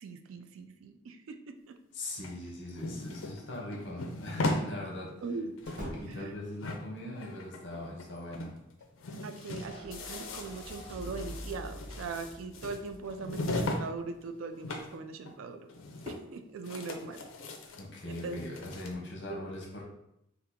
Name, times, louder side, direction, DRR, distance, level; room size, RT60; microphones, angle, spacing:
voice 1, 0.0-1.8 5.2-5.5 6.1-6.4 9.2-15.7 16.1-17.2 18.1-18.4 19.3-19.4, right 4 dB, 75° right, 7 dB, 0.3 m, -40 dB
voice 2, 1.9-5.2 5.8-8.6 17.8-19.8, left 1 dB, 60° left, -1 dB, 0.8 m, -40 dB
sound 1, 2.2-4.7 5.1-5.2 5.4-6.3 6.6-8.1 8.3-8.5 8.8-13.9 14.1-15.0 15.2-15.3 15.7-16.4 16.6-18.9, left 2 dB, 75° left, 0.4 m, -38 dB
sound 2, 2.6-3.3 3.6-3.7 5.6-6.5 8.0-9.0, equal, 40° right, 0.9 m, -46 dB
sound 3, 9.6-14.0, equal, 25° left, 0.6 m, -47 dB
2.8 x 2.4 x 3.5 m, 0.81 s
head